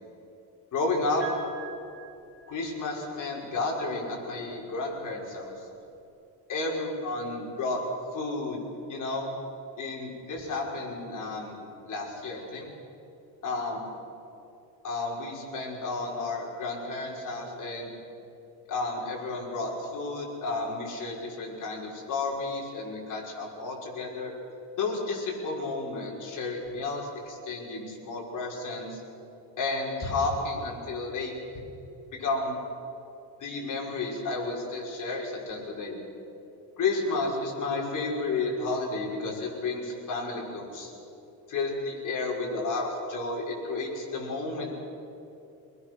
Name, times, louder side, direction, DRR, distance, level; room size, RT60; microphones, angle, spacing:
voice 1, 0.7-1.2 2.5-5.5 6.5-7.8 8.1-8.6 8.9-9.3 9.8-11.6 11.9-12.7 13.4-13.8 14.8-17.9 18.7-24.3 24.8-29.0 29.6-31.3 32.2-32.6 33.4-36.0 36.8-40.9 41.5-44.8, left 3 dB, 45° left, -2 dB, 5.9 m, -32 dB
Piano, 1.2-3.2 4.5-4.6, right 4 dB, 25° left, 7.6 m, -44 dB
24.0 x 21.0 x 6.4 m, 2.7 s
cardioid pair, 115°, 42 cm